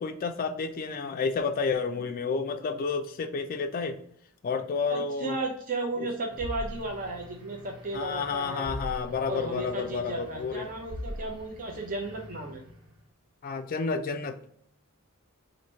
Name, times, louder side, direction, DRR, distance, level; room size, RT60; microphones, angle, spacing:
voice 1, 0.0-4.0 4.4-5.3 6.0-6.1 7.9-10.7 13.4-14.4, left 5 dB, 40° left, 7 dB, 0.3 m, -30 dB
voice 2, 4.9-8.7 9.2-12.6, right 2 dB, 35° right, 0 dB, 0.7 m, -34 dB
sound 1, 6.3-13.0, left 1 dB, 75° right, 1.4 m, -42 dB
2.9 x 2.6 x 4.3 m, 0.66 s
head